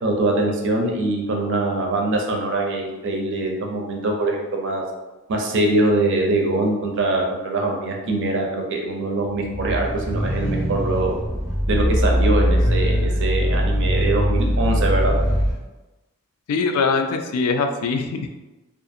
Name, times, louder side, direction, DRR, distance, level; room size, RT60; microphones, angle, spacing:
voice 1, 0.0-4.8 5.3-11.1 11.7-15.1, right 2 dB, 55° right, 1 dB, 0.5 m, -23 dB
sound 1, 9.4-15.6, equal, 10° right, 0.6 m, -21 dB
voice 2, 16.5-18.4, left 4 dB, 80° left, 5 dB, 0.3 m, -22 dB
2.5 x 2.4 x 2.6 m, 1.1 s
head